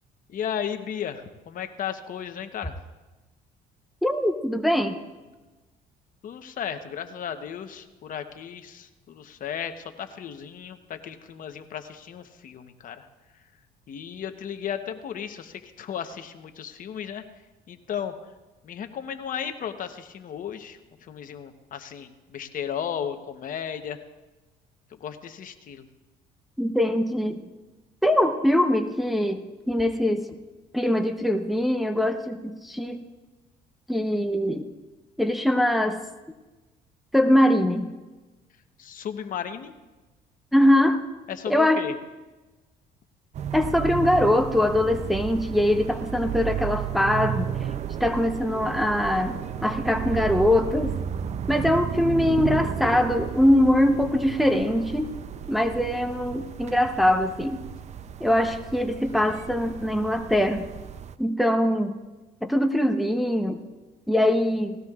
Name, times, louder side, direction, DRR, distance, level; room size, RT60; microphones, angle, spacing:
voice 1, 0.3-2.7 6.2-13.1 13.9-17.2 17.7-18.1 18.6-24.0 25.0-25.9 38.8-39.7 41.3-42.0, left 8 dB, 55° left, 8 dB, 1.0 m, -35 dB
voice 2, 4.0-5.0 26.6-27.4 28.0-30.2 30.7-33.0 33.9-34.7 35.2-36.0 37.1-37.9 40.5-41.0 41.5-41.8 43.5-47.5 48.0-50.9 51.5-55.1 55.5-57.6 58.2-60.6 61.2-62.0 62.4-63.6 64.1-64.8, left 1 dB, ahead, 5 dB, 0.8 m, -22 dB
sound 1, 43.3-61.2, right 9 dB, 40° right, 0.5 m, -33 dB
19.0 x 16.0 x 2.4 m, 1.2 s
cardioid pair, 110°, 17 cm